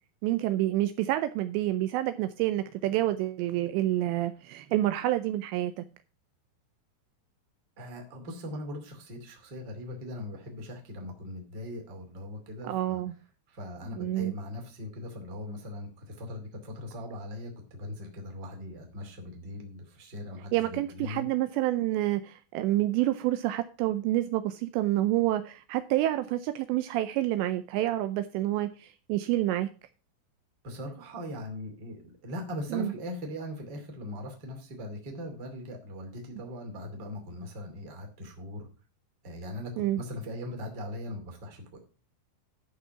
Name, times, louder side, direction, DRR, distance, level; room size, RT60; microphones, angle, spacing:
voice 1, 0.2-5.9 12.6-13.1 13.9-14.3 20.5-29.7 32.7-32.9 39.8-40.0, right 14 dB, 90° right, 10 dB, 2.5 m, -28 dB
voice 2, 7.8-13.0 13.5-21.3 30.6-38.7 39.2-41.8, left 1 dB, 35° right, 3 dB, 1.9 m, -40 dB
12.5 x 5.5 x 5.7 m, 0.36 s
omnidirectional pair, 5.7 m